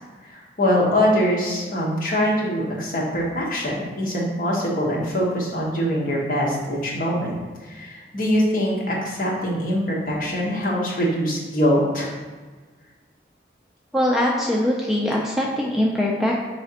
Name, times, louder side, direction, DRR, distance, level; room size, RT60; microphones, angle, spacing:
voice 1, 0.3-7.3 7.6-12.1, equal, 50° left, -4 dB, 1.0 m, -23 dB
voice 2, 13.9-16.4, left 1 dB, ahead, -4 dB, 0.3 m, -22 dB
4.8 x 3.2 x 2.8 m, 1.4 s
head